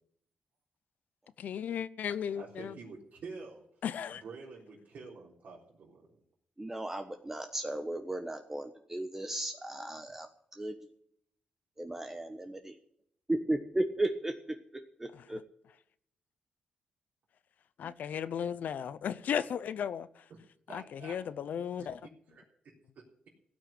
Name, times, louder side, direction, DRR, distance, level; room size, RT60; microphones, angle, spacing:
voice 1, 1.4-2.7 3.8-4.2 15.1-15.4 17.8-20.1 20.7-22.0, left 8 dB, 70° left, 16 dB, 0.7 m, -35 dB
voice 2, 2.3-3.6 4.1-6.2 19.1-19.2 20.3-20.4 20.7-21.2 21.5-22.4 22.9-23.0, right 4 dB, 65° right, -6 dB, 4.0 m, -48 dB
voice 3, 6.6-10.3 10.6-10.8 11.8-12.7 13.3-14.6 15.0-15.4, right 1 dB, 15° right, 5 dB, 1.2 m, -35 dB
16.5 x 6.4 x 10.0 m, 0.70 s
cardioid pair, 100°, 3 cm